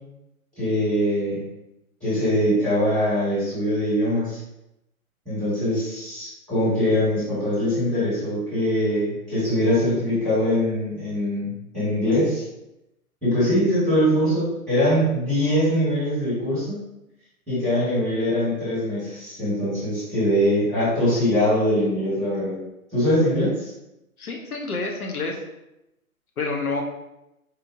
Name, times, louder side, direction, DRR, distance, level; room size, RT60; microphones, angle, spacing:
voice 1, 0.6-1.4 2.0-4.4 5.2-12.4 13.2-16.8 17.5-22.6 22.9-23.7, equal, ahead, -12 dB, 1.4 m, -22 dB
voice 2, 24.2-25.4 26.4-26.8, left 3 dB, 80° left, 1 dB, 0.8 m, -28 dB
4.2 x 2.5 x 2.6 m, 0.90 s
figure-of-eight pair, 140°, 43 cm